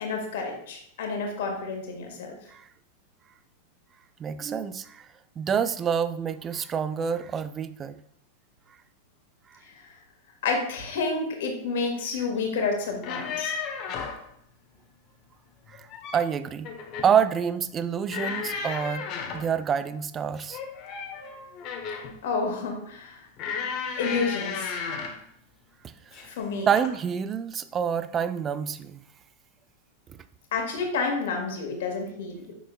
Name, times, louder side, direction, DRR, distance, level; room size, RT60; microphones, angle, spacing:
voice 1, 0.0-2.4 9.6-9.9 10.4-13.7 22.2-23.3 24.0-24.9 26.2-26.7 30.5-32.5, left 4 dB, 55° left, 2 dB, 1.9 m, -30 dB
voice 2, 4.2-5.1 5.4-8.0 15.7-15.9 16.1-16.7 17.0-19.0 19.3-20.6 26.7-29.0, right 7 dB, 25° right, 12 dB, 0.5 m, -27 dB
sound 1, 12.9-14.2 15.7-16.3 16.6-17.2 18.1-19.5 20.5-22.2 23.4-25.2 26.1-26.4 26.8-27.0, left 5 dB, 40° left, 1.0 m, -34 dB
9.1 x 6.4 x 2.3 m, 0.70 s
figure-of-eight pair, 90°, 0 cm